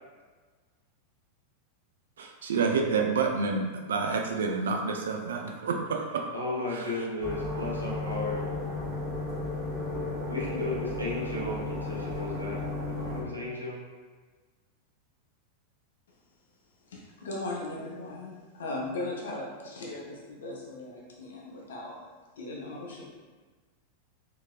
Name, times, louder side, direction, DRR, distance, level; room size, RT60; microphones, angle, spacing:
voice 1, 2.2-6.3, right 4 dB, 65° right, 2 dB, 0.4 m, -28 dB
voice 2, 6.3-8.4 10.3-13.9, left 2 dB, 90° right, -6 dB, 0.7 m, -34 dB
sound 1, 7.2-13.2, left 2 dB, 25° right, 1.2 m, -34 dB
voice 3, 16.9-21.9 22.4-23.1, left 2 dB, 65° left, -3 dB, 0.7 m, -38 dB
2.8 x 2.8 x 2.3 m, 1.4 s
figure-of-eight pair, 90°, 0 cm